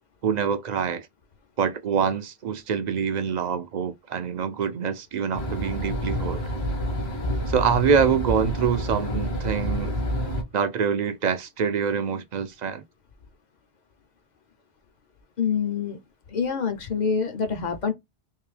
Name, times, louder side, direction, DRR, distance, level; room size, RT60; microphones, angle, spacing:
voice 1, 0.2-1.1 1.6-6.4 7.5-9.9 10.5-12.8, right 7 dB, 55° right, 0.5 m, -25 dB
sound 1, 5.3-10.4, equal, 70° left, 1.5 m, -28 dB
voice 2, 15.4-16.0 16.3-17.9, left 6 dB, 50° left, 0.7 m, -26 dB
3.7 x 2.7 x 3.2 m
omnidirectional pair, 1.1 m